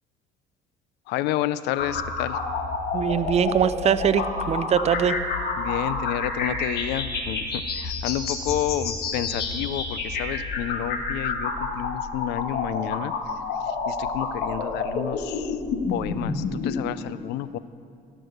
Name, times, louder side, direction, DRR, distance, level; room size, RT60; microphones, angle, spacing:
voice 1, 1.1-2.4 5.6-13.1 13.7-15.6 15.9-17.6, left 12 dB, 90° left, 15 dB, 0.5 m, -30 dB
sound 1, 1.7-16.7, left 4 dB, 70° left, 1.8 m, -29 dB
voice 2, 2.9-5.2, right 8 dB, 40° right, 14 dB, 0.5 m, -22 dB
16.0 x 6.1 x 6.6 m, 2.2 s
cardioid pair, 110°, 17 cm